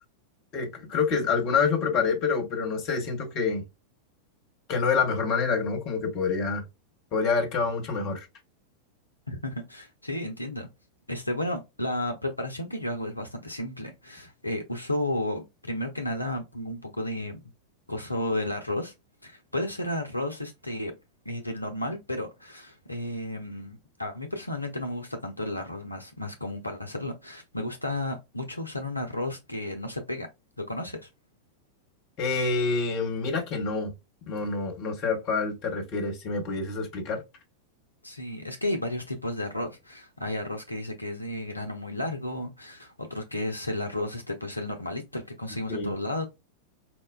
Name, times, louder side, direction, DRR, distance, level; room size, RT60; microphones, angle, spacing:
voice 1, 0.5-3.6 4.7-6.6 7.1-8.3 32.2-33.9 34.3-37.2 45.7-45.9, left 4 dB, 40° left, 0.9 m, -27 dB
voice 2, 9.3-10.7 11.1-17.4 17.9-18.9 19.2-20.9 21.3-30.3 30.6-31.1 38.0-46.3, left 1 dB, 85° left, 0.4 m, -33 dB
4.2 x 2.1 x 2.2 m
figure-of-eight pair, 90°, 0 cm